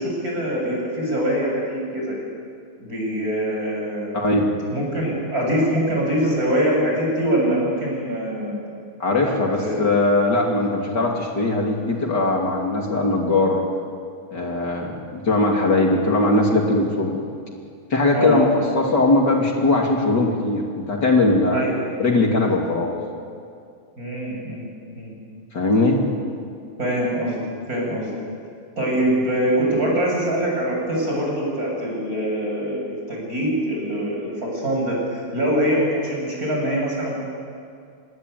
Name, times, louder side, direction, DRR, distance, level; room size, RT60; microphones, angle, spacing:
voice 1, 0.0-2.2 2.8-4.1 4.7-8.6 9.2-9.9 18.1-18.8 21.5-21.8 24.0-24.7 24.9-25.1 26.8-27.4 27.7-28.1 28.8-37.1, equal, 40° right, -2 dB, 8.2 m, -23 dB
voice 2, 4.1-4.5 9.0-13.6 14.3-17.2 17.9-18.5 18.8-21.6 22.0-22.9 25.5-26.0, left 2 dB, 50° left, 0 dB, 3.3 m, -20 dB
27.0 x 20.5 x 9.4 m, 2.3 s
omnidirectional pair, 2.4 m